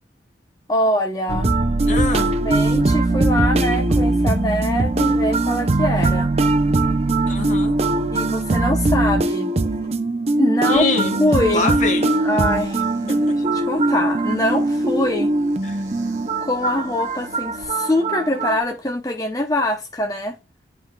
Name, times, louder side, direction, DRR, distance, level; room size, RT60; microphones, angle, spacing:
voice 1, 0.7-1.5 1.8-2.0 2.4-6.3 8.1-9.5 10.4-10.8 11.2-11.7 12.2-15.3 16.4-20.4, left 1 dB, 20° left, 0.7 m, -23 dB
sound 1, 1.3-18.6, right 2 dB, 35° right, 0.6 m, -20 dB
voice 2, 1.9-2.4 7.3-7.8 10.7-11.2 11.5-12.2 13.1-13.4 15.6-15.8, left 3 dB, 45° left, 1.3 m, -25 dB
sound 2, 10.7-17.6, equal, 20° right, 1.3 m, -43 dB
11.5 x 4.6 x 2.3 m
head